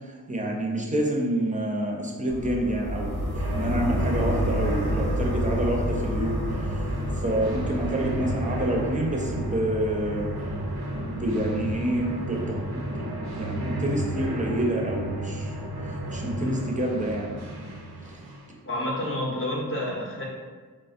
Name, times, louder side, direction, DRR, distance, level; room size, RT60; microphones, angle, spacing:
voice 1, 0.0-10.3 11.0-13.1 13.4-15.5 16.1-17.4 18.1-18.2, right 1 dB, 20° right, -1 dB, 0.5 m, -28 dB
sound 1, 2.3-12.2, equal, 85° left, 0.6 m, -31 dB
sound 2, 2.8-18.5, right 1 dB, 90° right, 0.5 m, -33 dB
voice 2, 16.2-16.6 18.7-20.2, left 1 dB, 35° left, -4 dB, 0.6 m, -29 dB
3.3 x 2.1 x 2.5 m, 1.5 s
wide cardioid pair, 45°, 38 cm